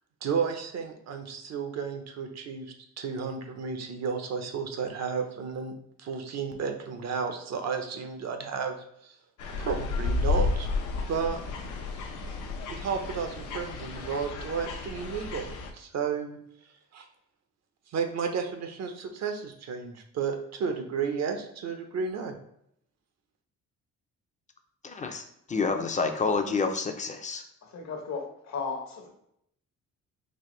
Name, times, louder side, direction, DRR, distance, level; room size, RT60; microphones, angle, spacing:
voice 1, 0.2-8.8 9.0-9.2 9.6-10.7 11.1-11.4 12.7-16.4 16.9-17.0 17.9-22.3, right 6 dB, 60° right, 0.7 m, -32 dB
sound 1, 9.4-15.7, left 4 dB, 80° left, 0.7 m, -32 dB
voice 2, 24.8-25.2 25.5-27.4, left 4 dB, 25° left, 0.5 m, -28 dB
voice 3, 27.6-29.1, left 4 dB, 65° left, 1.0 m, -35 dB
4.1 x 2.5 x 3.0 m
cardioid pair, 90°, 30 cm